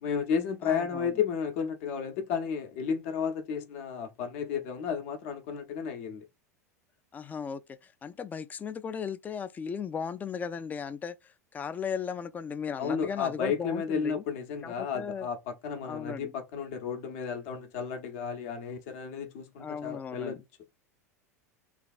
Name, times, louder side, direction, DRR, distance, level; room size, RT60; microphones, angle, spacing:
voice 1, 0.0-6.3 12.8-20.4, left 6 dB, 50° left, 0.7 m, -33 dB
voice 2, 0.6-1.1 7.1-14.2 14.6-15.3 15.8-16.3 19.6-20.4, left 6 dB, 20° left, 0.3 m, -37 dB
3.3 x 2.2 x 2.4 m
figure-of-eight pair, 85°, 9 cm